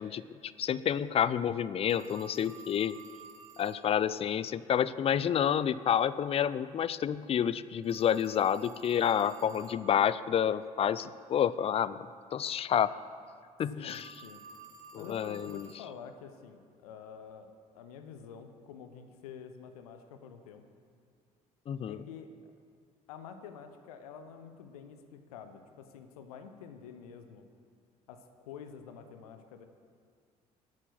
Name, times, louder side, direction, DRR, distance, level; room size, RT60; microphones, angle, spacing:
voice 1, 0.0-3.0 3.6-12.9 13.6-14.1 14.9-15.7 21.7-22.0, left 9 dB, 30° left, 17 dB, 0.4 m, -29 dB
Telephone, 1.9-3.9 7.8-9.9 13.9-15.9, right 4 dB, 40° right, 1.3 m, -52 dB
voice 2, 13.7-14.4 14.9-20.6 21.9-22.3 23.1-27.5 28.1-29.7, left 7 dB, 70° left, 8 dB, 0.8 m, -48 dB
11.0 x 8.9 x 6.0 m, 2.1 s
figure-of-eight pair, 50°, 20 cm